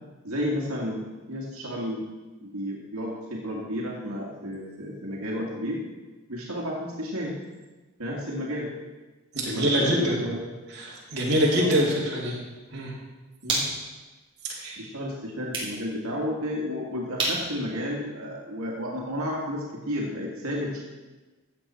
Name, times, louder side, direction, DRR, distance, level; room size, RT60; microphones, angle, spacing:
voice 1, 0.2-2.0 2.4-5.8 6.3-7.4 8.0-8.7 9.4-10.5 11.6-11.8 13.4-13.7 14.8-20.8, equal, 85° right, -3 dB, 2.0 m, -32 dB
voice 2, 9.3-10.2 10.8-12.4 12.7-12.9 14.5-14.8, equal, 50° right, -5 dB, 2.8 m, -24 dB
sound 1, 11.4-18.8, right 2 dB, 25° right, 2.8 m, -36 dB
14.5 x 7.8 x 4.4 m, 1.2 s
head